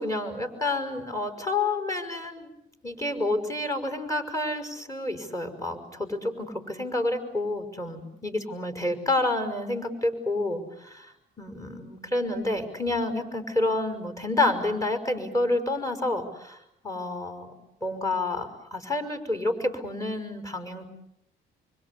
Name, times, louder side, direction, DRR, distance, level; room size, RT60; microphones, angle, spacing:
voice 1, 0.0-2.5 2.8-11.1 11.4-16.6 16.8-17.5 17.8-20.9, left 2 dB, 15° left, 8 dB, 5.8 m, -29 dB
25.5 x 25.0 x 8.6 m, 0.80 s
cardioid pair, 90°, 20 cm